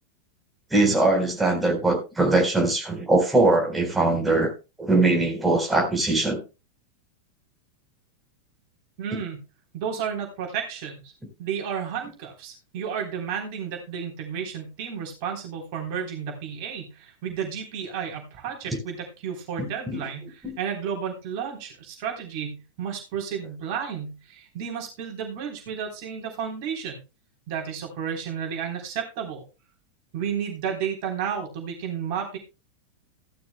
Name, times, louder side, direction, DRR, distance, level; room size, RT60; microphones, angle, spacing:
voice 1, 0.7-4.5 4.8-6.4 19.9-20.0 20.4-20.6, right 2 dB, 10° right, 1 dB, 4.2 m, -21 dB
voice 2, 9.0-9.4 9.7-11.1 11.4-27.0 27.5-29.4 30.1-32.4, right 7 dB, 45° right, 1 dB, 3.6 m, -32 dB
15.5 x 12.0 x 2.2 m, 0.30 s
figure-of-eight pair, 90°, 0 cm